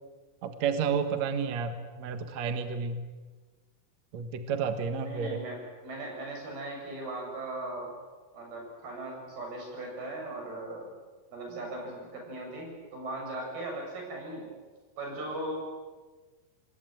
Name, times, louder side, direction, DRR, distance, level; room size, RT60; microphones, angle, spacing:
voice 1, 0.4-3.0 4.1-5.4, right 6 dB, 55° right, 8 dB, 2.4 m, -31 dB
voice 2, 5.0-7.9 8.3-10.9 11.3-14.5 15.0-15.6, right 2 dB, 85° right, 1 dB, 9.1 m, -38 dB
27.0 x 20.5 x 9.2 m, 1.3 s
omnidirectional pair, 4.3 m